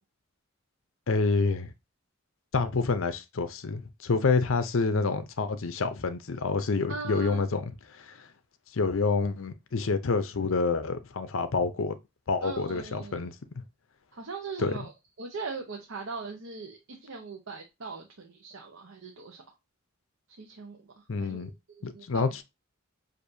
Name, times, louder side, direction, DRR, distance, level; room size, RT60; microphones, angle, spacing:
voice 1, 1.1-1.7 2.5-8.3 8.7-12.0 12.3-13.3 14.6-14.7 21.1-21.5 21.8-22.4, left 4 dB, 70° left, 0.6 m, -28 dB
voice 2, 6.9-7.4 12.4-13.2 14.1-14.9 15.2-19.4 20.4-22.2, right 4 dB, 70° right, 0.8 m, -40 dB
6.5 x 2.6 x 2.7 m
head